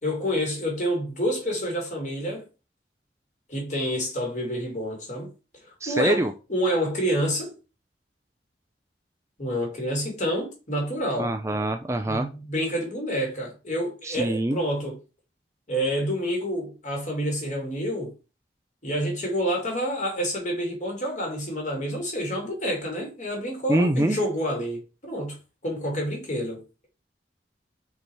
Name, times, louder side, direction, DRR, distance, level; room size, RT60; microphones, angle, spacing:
voice 1, 0.0-2.4 3.5-5.3 5.9-7.5 9.4-11.3 12.0-14.9 15.7-18.1 18.8-25.4 25.6-26.6, equal, 45° left, 2.7 m, -28 dB
voice 2, 5.8-6.3 11.2-12.3 14.0-14.6 23.7-24.2, right 1 dB, 15° right, 0.4 m, -24 dB
5.2 x 4.5 x 4.7 m
head